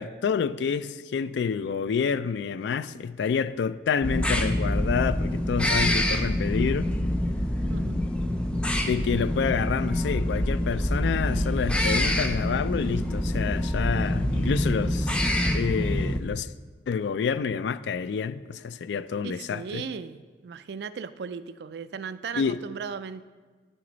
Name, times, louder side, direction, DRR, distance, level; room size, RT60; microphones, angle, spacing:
voice 1, 0.0-6.9 8.8-15.2 15.5-16.5 16.9-19.8 22.4-22.6, left 6 dB, 85° left, 0.3 m, -28 dB
sound 1, 4.0-16.2, left 1 dB, 5° left, 0.4 m, -26 dB
voice 2, 19.2-23.2, right 6 dB, 70° right, 0.3 m, -36 dB
10.0 x 6.2 x 3.9 m
head